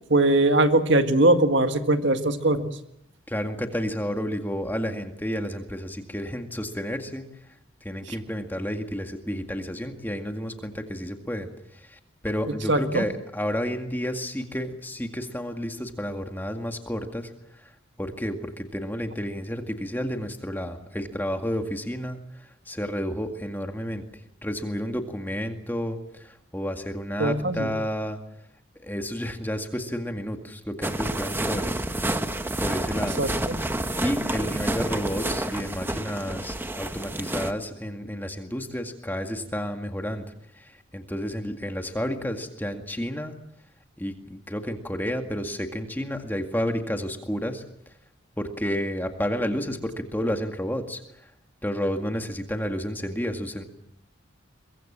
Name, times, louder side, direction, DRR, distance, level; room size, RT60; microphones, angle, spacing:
voice 1, 0.1-2.7 12.7-13.0 27.2-27.7 33.2-33.6, right 2 dB, 60° right, 7 dB, 1.8 m, -21 dB
voice 2, 3.3-7.2 7.8-17.7 18.0-24.0 24.4-28.2 28.8-31.8 32.6-33.2 33.9-40.2 40.6-43.3 44.0-47.6 48.4-51.3 51.6-53.6, equal, 10° left, 5 dB, 2.0 m, -31 dB
sound 1, 30.8-37.5, right 1 dB, 10° right, 1.0 m, -29 dB
23.0 x 23.0 x 7.4 m, 0.75 s
head